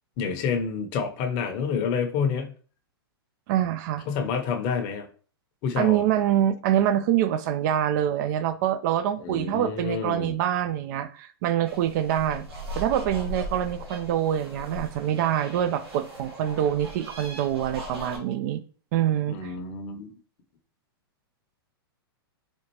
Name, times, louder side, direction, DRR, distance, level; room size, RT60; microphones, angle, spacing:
voice 1, 0.2-2.5 4.1-5.1 5.6-6.0 9.2-10.3 19.3-20.1, left 6 dB, 40° left, 0.8 m, -28 dB
voice 2, 3.5-4.0 5.8-12.5 12.8-18.6 18.9-19.5, right 11 dB, 50° right, 0.4 m, -25 dB
sound 1, 11.7-18.2, equal, 80° right, 1.3 m, -39 dB
4.3 x 2.4 x 3.0 m
hypercardioid pair, 115°, 13 cm